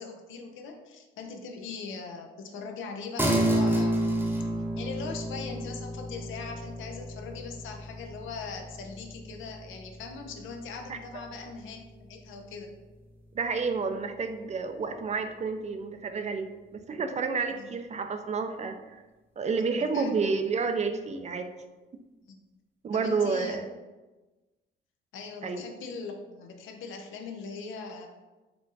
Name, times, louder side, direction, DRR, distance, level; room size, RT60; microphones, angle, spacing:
voice 1, 0.0-4.1 4.8-12.7 17.6-17.7 19.6-20.2 22.2-22.4 22.9-23.7 25.1-28.1, left 4 dB, 80° left, 4 dB, 0.7 m, -40 dB
sound 1, 3.2-12.9, right 1 dB, 10° right, 0.7 m, -32 dB
voice 2, 13.3-16.5 16.7-19.0 19.4-21.5 22.8-23.7 25.4-25.6, right 4 dB, 35° right, 7 dB, 0.4 m, -30 dB
4.4 x 2.4 x 3.9 m, 1.2 s
cardioid pair, 90°, 20 cm